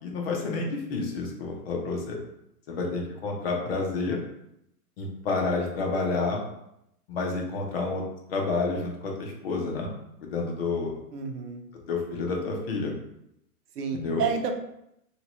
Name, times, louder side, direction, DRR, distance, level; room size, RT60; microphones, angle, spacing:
voice 1, 0.0-2.2 2.7-4.2 5.0-6.4 7.1-8.0 8.3-9.9 10.2-10.9 11.9-12.9 13.9-14.2, left 3 dB, 40° left, 0 dB, 0.6 m, -29 dB
voice 2, 11.1-11.6 13.8-14.5, right 6 dB, 75° right, 5 dB, 0.7 m, -30 dB
2.9 x 2.8 x 2.9 m, 0.79 s
hypercardioid pair, 155°, 46 cm